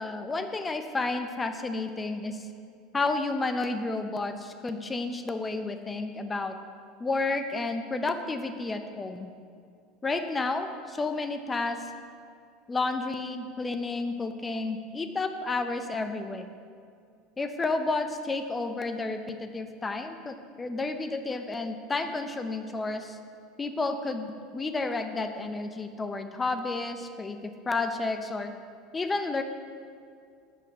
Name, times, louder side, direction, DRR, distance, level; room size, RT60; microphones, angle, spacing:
voice 1, 0.0-2.5 2.9-6.6 7.0-9.3 10.0-11.8 12.7-16.5 17.4-23.2 23.6-28.5 28.9-29.4, left 3 dB, 20° left, 8 dB, 0.6 m, -31 dB
7.7 x 5.7 x 5.4 m, 2.3 s
supercardioid pair, 100°, 0 cm